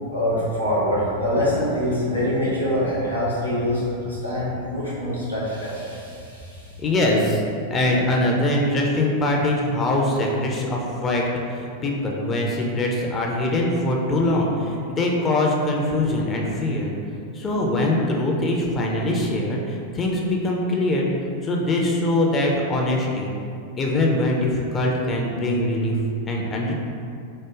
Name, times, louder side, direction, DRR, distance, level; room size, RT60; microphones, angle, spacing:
voice 1, 0.1-6.7, left 1 dB, 90° right, -9 dB, 1.1 m, -24 dB
voice 2, 6.8-7.4 7.7-16.9 17.3-21.1 21.4-23.3 23.8-26.0 26.3-26.7, left 1 dB, 25° left, -1 dB, 0.4 m, -22 dB
3.0 x 2.1 x 3.5 m, 2.5 s
figure-of-eight pair, 90°, 0 cm